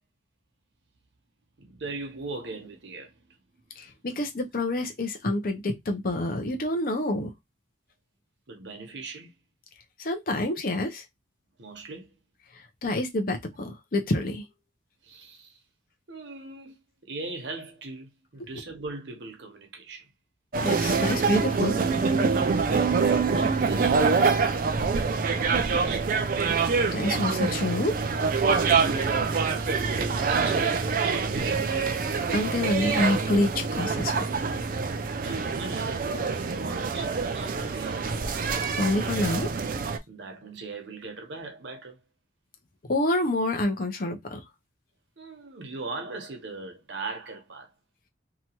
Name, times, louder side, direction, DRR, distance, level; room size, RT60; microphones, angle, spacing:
voice 1, 1.6-3.4 8.5-9.3 11.6-12.1 15.0-15.6 16.1-16.8 17.1-20.1 22.3-24.7 25.2-26.3 28.8-31.7 35.2-38.1 40.1-42.0 45.2-47.7, right 3 dB, 75° right, 0.8 m, -40 dB
voice 2, 3.8-7.3 10.0-11.0 12.8-14.4 20.6-21.8 26.9-28.0 32.3-34.3 38.8-39.5 42.9-44.4, left 1 dB, 50° left, 0.6 m, -27 dB
sound 1, 20.5-40.0, right 5 dB, 50° right, 0.4 m, -25 dB
2.8 x 2.2 x 2.9 m
head